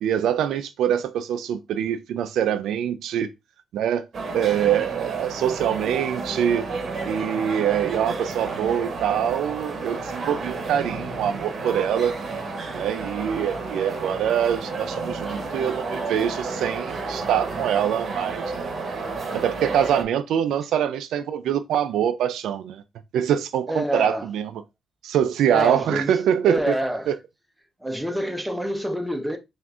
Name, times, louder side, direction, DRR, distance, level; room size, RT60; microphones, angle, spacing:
voice 1, 0.0-3.3 3.7-4.1 4.3-6.7 7.1-12.1 12.7-18.7 19.3-22.8 23.1-24.5 25.0-26.7 27.1-27.2, right 9 dB, 80° right, 0.3 m, -24 dB
sound 1, 4.1-20.0, right 3 dB, 50° right, 0.9 m, -31 dB
voice 2, 23.7-24.3 25.5-26.2 26.5-27.1 27.8-29.4, equal, 5° right, 0.7 m, -27 dB
5.8 x 2.5 x 2.4 m
cardioid pair, 90°, 0 cm